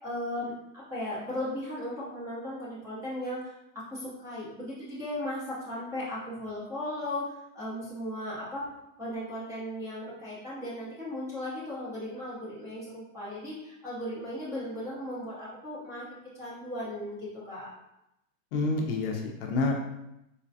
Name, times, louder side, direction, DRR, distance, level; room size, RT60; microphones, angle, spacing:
voice 1, 0.0-3.5 3.9-8.6 9.0-17.7, left 1 dB, 10° right, -9 dB, 0.5 m, -36 dB
voice 2, 18.5-19.9, left 3 dB, 50° left, 1 dB, 0.5 m, -28 dB
4.0 x 2.2 x 2.6 m, 0.87 s
supercardioid pair, 155°, 39 cm